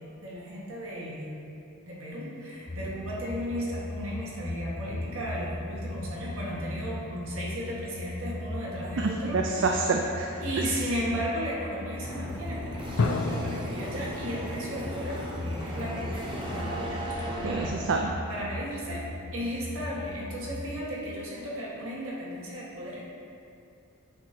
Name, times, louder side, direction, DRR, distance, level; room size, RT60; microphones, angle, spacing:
voice 1, 0.2-1.3 1.8-9.7 10.4-17.7 18.3-19.0 19.3-23.0, equal, 75° right, -6 dB, 1.6 m, -35 dB
sound 1, 2.7-20.8, left 1 dB, 20° left, 0.7 m, -38 dB
sound 2, 4.9-7.8 8.4-8.7 13.0-17.3, left 3 dB, 80° left, 0.5 m, -36 dB
voice 2, 9.0-10.6 17.4-18.1, right 3 dB, 60° right, 2 dB, 0.4 m, -28 dB
sound 3, 12.0-17.7, right 1 dB, 25° right, 0.9 m, -37 dB
8.5 x 2.8 x 5.9 m, 2.7 s
head